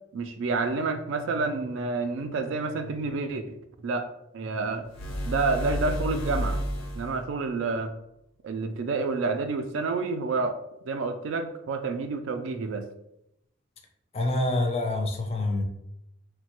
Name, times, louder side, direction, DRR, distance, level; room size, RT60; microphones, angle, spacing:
voice 1, 0.1-3.6 3.8-4.1 4.3-4.9 5.3-6.6 6.9-7.9 8.4-10.6 10.9-12.9, right 3 dB, 70° right, 8 dB, 0.3 m, -29 dB
sound 1, 4.9-7.3, equal, 80° left, 0.5 m, -31 dB
voice 2, 14.1-15.6, left 2 dB, 30° left, 4 dB, 0.4 m, -26 dB
3.0 x 2.1 x 2.9 m, 0.82 s
head